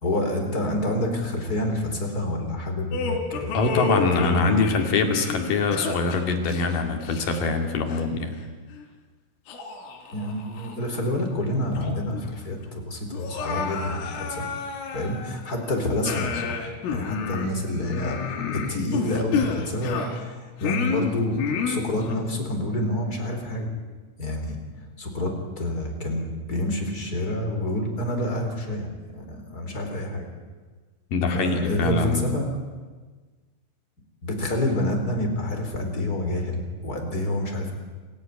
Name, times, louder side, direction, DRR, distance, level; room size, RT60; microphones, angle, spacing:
voice 1, 0.0-3.6 4.2-4.5 10.1-14.5 14.9-16.6 16.9-23.7 24.2-24.6 25.0-30.2 31.3-32.6 34.2-37.7, left 1 dB, 20° left, 3 dB, 3.8 m, -28 dB
sound 1, 2.9-7.6 7.9-8.1 8.8-8.9 9.5-10.8 11.2-11.3 11.7-12.3 12.5-12.6 13.1-15.6 16.0-20.3 20.6-22.2, left 6 dB, 90° left, 5.4 m, -30 dB
voice 2, 3.5-8.3 31.1-32.3, left 3 dB, 50° left, 4 dB, 3.5 m, -24 dB
27.5 x 16.0 x 9.7 m, 1.4 s
omnidirectional pair, 5.8 m